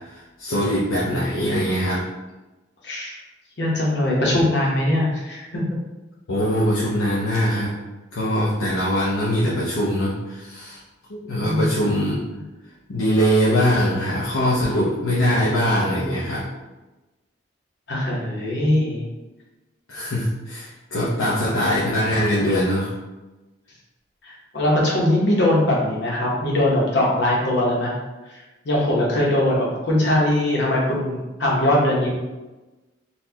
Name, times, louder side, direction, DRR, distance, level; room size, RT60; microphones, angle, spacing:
voice 1, 0.0-2.0 6.3-7.8 8.1-10.8 11.1-12.2 12.9-16.5 19.9-22.9, equal, 85° left, -7 dB, 0.6 m, -22 dB
voice 2, 2.8-3.2 3.6-5.6 11.4-12.0 17.9-19.0 24.2-27.9 28.3-32.2, left 1 dB, 60° left, -4 dB, 0.9 m, -21 dB
4.1 x 2.3 x 2.8 m, 1.1 s
head